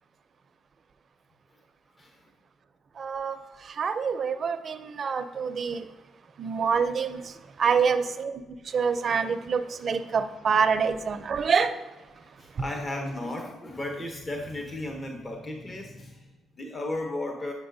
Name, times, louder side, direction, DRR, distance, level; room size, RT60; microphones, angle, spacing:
voice 1, 2.0-2.3 7.6-8.0 12.2-17.5, left 1 dB, 30° left, 0.8 m, -35 dB
voice 2, 2.9-5.9 6.4-11.8 12.5-12.6, right 6 dB, 50° right, 0.5 m, -27 dB
8.7 x 5.7 x 2.6 m
cardioid pair, 90°, 0 cm